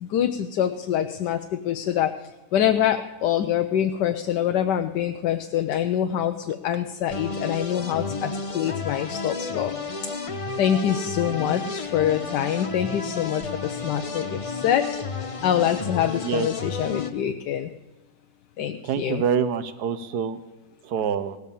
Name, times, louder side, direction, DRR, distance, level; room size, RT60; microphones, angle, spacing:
voice 1, 0.0-2.1 2.5-9.7 10.3-14.9 15.2-17.7 18.6-19.2, left 10 dB, 75° left, 7 dB, 1.3 m, -25 dB
sound 1, 7.1-17.1, left 4 dB, 40° left, 0.4 m, -32 dB
voice 2, 18.8-20.4 20.8-21.4, right 7 dB, 65° right, 12 dB, 1.3 m, -26 dB
17.5 x 8.3 x 6.9 m, 1.1 s
omnidirectional pair, 1.9 m